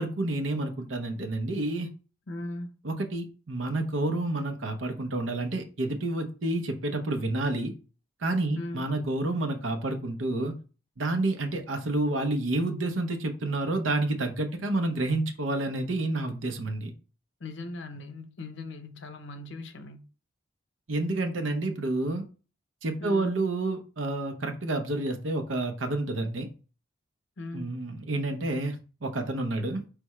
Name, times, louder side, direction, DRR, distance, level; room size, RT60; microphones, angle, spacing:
voice 1, 0.0-1.9 2.8-7.7 8.2-10.5 11.0-16.9 20.9-22.2 22.8-26.5 27.5-28.8 29.0-29.8, right 2 dB, 80° right, 0.8 m, -29 dB
voice 2, 2.3-2.8 8.5-8.8 14.5-14.6 17.4-20.1 23.0-23.4 27.4-27.8, left 2 dB, 70° left, 0.7 m, -39 dB
4.6 x 3.4 x 3.1 m
head